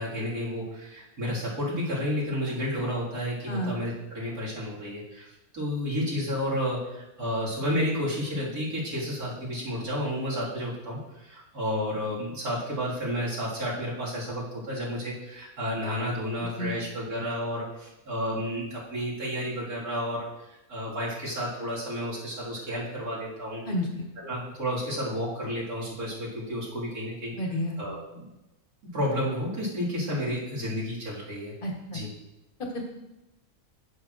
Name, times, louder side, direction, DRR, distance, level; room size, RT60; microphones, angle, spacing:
voice 1, 0.0-23.6 24.2-27.3 27.8-28.3 28.9-31.5 31.9-32.1, equal, 75° right, -7 dB, 2.7 m, -31 dB
voice 2, 23.6-24.1 27.3-27.8 31.6-32.0 32.7-32.8, left 1 dB, 35° left, 1 dB, 1.3 m, -31 dB
11.0 x 6.2 x 2.5 m, 0.96 s
omnidirectional pair, 1.6 m